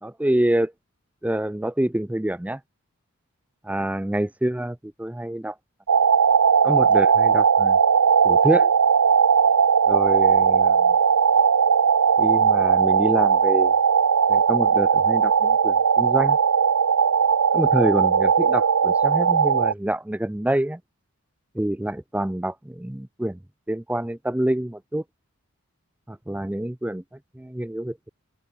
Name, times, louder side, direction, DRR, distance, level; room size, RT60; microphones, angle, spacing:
voice 1, 0.0-0.7 1.2-2.6 3.6-5.6 6.6-7.8 8.2-8.7 9.9-11.0 12.2-13.8 14.3-16.4 17.5-20.8 21.5-23.4 23.7-25.0 26.1-27.0 27.3-28.1, right 1 dB, 5° right, 0.4 m, -26 dB
sound 1, 5.9-19.7, right 6 dB, 85° right, 0.7 m, -18 dB
open air
head